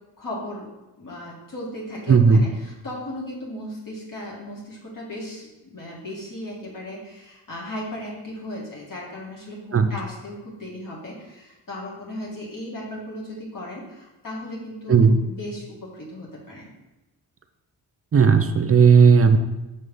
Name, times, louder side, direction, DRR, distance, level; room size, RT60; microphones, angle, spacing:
voice 1, 0.2-0.7 1.0-16.7, left 1 dB, 50° left, -5 dB, 2.0 m, -36 dB
voice 2, 2.1-2.5 9.7-9.9 14.9-15.2 18.1-19.4, right 5 dB, 35° right, 8 dB, 0.5 m, -15 dB
6.5 x 3.2 x 5.4 m, 1.0 s
cardioid pair, 70°, 42 cm